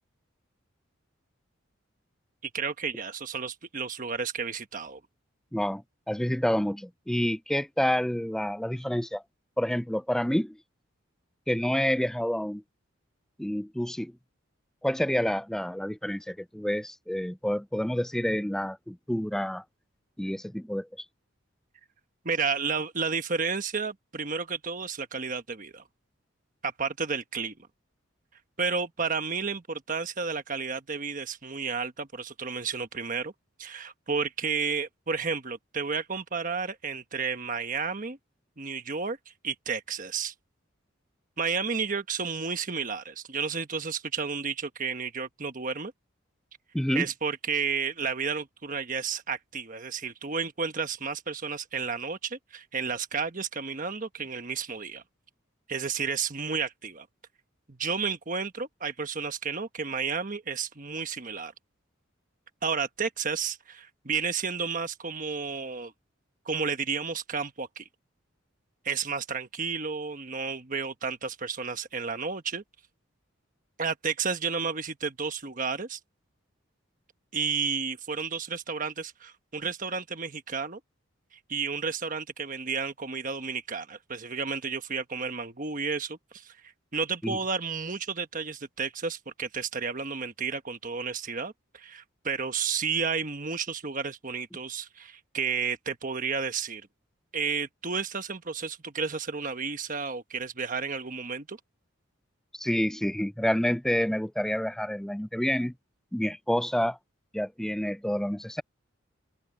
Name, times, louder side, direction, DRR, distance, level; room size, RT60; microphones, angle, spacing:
voice 1, 2.5-5.0 22.2-25.8 26.6-27.5 28.6-33.3 33.6-38.2 38.6-39.2 39.4-40.3 41.4-45.9 46.9-55.0 55.7-57.1 57.7-61.5 62.6-65.9 66.4-67.8 68.8-72.6 73.8-76.0 77.3-80.8 81.3-86.6 86.9-96.9 97.3-101.6, right 5 dB, 40° right, 1.2 m, -32 dB
voice 2, 6.1-9.2 9.6-10.6 11.5-12.6 13.4-14.1 14.8-19.6 20.2-21.1 46.7-47.1 87.2-87.4 102.5-105.7 106.1-107.0 107.3-108.6, equal, 5° left, 0.3 m, -28 dB
open air
head